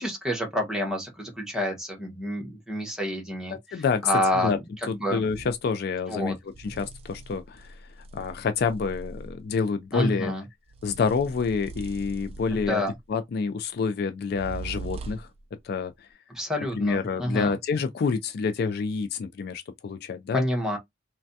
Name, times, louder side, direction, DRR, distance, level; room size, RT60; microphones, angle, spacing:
voice 1, 0.0-5.2 6.1-6.4 9.9-10.4 12.5-12.9 16.3-17.5 20.3-20.8, left 1 dB, 5° right, 1.0 m, -29 dB
voice 2, 3.5-4.0 4.3-4.6 4.9-7.8 8.1-10.3 10.8-15.3 15.6-15.9 16.7-20.4, left 5 dB, 55° left, 0.3 m, -28 dB
sound 1, 5.3-5.6 6.5-9.5 10.7-12.9 14.3-15.4, right 3 dB, 30° right, 0.3 m, -41 dB
3.3 x 2.2 x 2.6 m
head